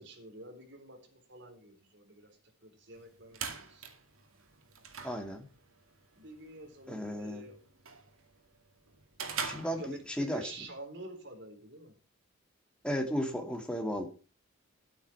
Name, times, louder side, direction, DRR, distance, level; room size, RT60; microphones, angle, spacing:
voice 1, 0.0-3.9 6.1-7.6 9.7-12.0, right 2 dB, 55° right, 4 dB, 3.8 m, -49 dB
sound 1, 2.9-10.4, right 6 dB, 75° right, 2.3 m, -44 dB
voice 2, 5.0-5.5 6.9-7.4 9.4-10.4 12.8-14.0, equal, 5° left, 4 dB, 2.2 m, -34 dB
12.0 x 9.2 x 5.9 m, 0.35 s
head